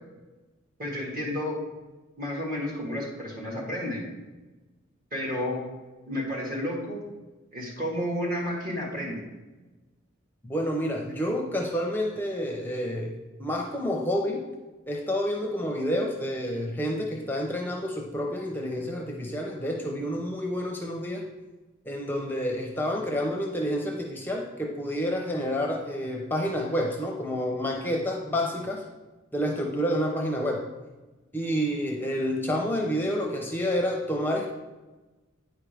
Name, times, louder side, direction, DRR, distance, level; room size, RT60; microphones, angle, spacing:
voice 1, 0.8-1.6 2.2-4.0 5.1-5.6 6.1-7.0 7.5-9.2, left 1 dB, 45° right, -2 dB, 1.8 m, -31 dB
voice 2, 10.4-13.1 13.4-14.5 14.9-21.3 21.9-28.9 29.3-30.6 31.3-34.5, equal, 10° left, 0 dB, 0.6 m, -29 dB
9.0 x 4.9 x 3.4 m, 1.2 s
head